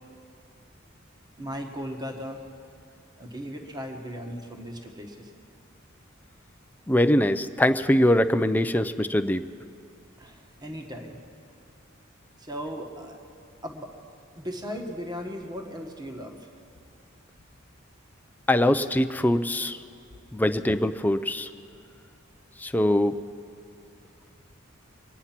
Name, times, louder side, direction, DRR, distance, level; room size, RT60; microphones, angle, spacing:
voice 1, 1.4-2.4 3.2-5.3 10.2-11.2 12.4-13.2 13.6-13.9 14.3-16.5, equal, 20° right, 3 dB, 1.3 m, -37 dB
voice 2, 6.9-9.4 18.5-19.8 20.3-21.5 22.6-23.1, left 1 dB, 10° left, 9 dB, 0.4 m, -22 dB
24.5 x 9.6 x 5.8 m, 2.6 s
head